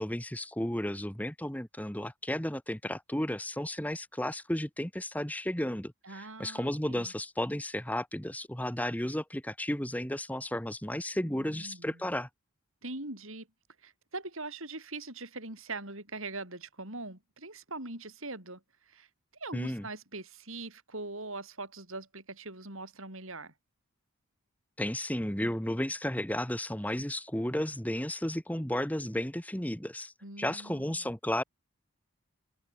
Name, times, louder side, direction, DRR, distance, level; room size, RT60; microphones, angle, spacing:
voice 1, 0.0-12.3 19.5-19.9 24.8-31.4, left 1 dB, 5° left, 1.4 m, -33 dB
voice 2, 6.0-7.1 11.2-12.0 12.8-13.5 13.8-18.6 18.9-19.1 19.4-23.5 30.2-31.1, right 2 dB, 65° right, 7.0 m, -42 dB
open air
head